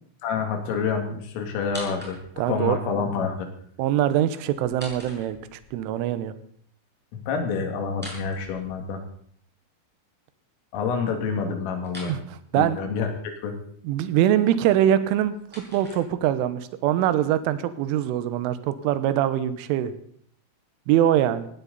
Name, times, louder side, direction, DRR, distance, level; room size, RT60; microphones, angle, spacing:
voice 1, 0.2-2.2 2.5-3.5 7.1-9.0 10.7-12.1 12.5-13.1 13.4-13.6, left 5 dB, 85° left, 4 dB, 4.9 m, -27 dB
sound 1, 1.6-2.6 4.5-5.8 7.9-9.2 11.8-12.2 14.9-16.5, equal, ahead, 5.8 m, -43 dB
voice 2, 2.4-2.8 3.8-6.3 12.1-12.8 13.8-15.3 15.7-19.9 20.9-21.5, right 11 dB, 85° right, 12 dB, 3.4 m, -23 dB
19.0 x 16.0 x 4.1 m, 0.62 s
omnidirectional pair, 5.7 m